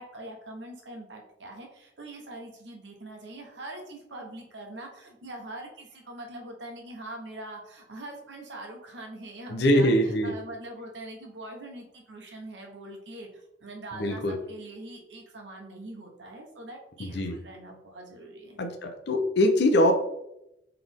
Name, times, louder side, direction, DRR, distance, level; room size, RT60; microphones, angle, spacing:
voice 1, 0.0-18.6, right 1 dB, 75° right, 1 dB, 1.0 m, -43 dB
voice 2, 9.5-10.3 14.0-14.4 17.0-17.4 18.6-19.9, left 1 dB, 65° left, 4 dB, 0.6 m, -23 dB
4.0 x 3.3 x 3.6 m, 0.83 s
head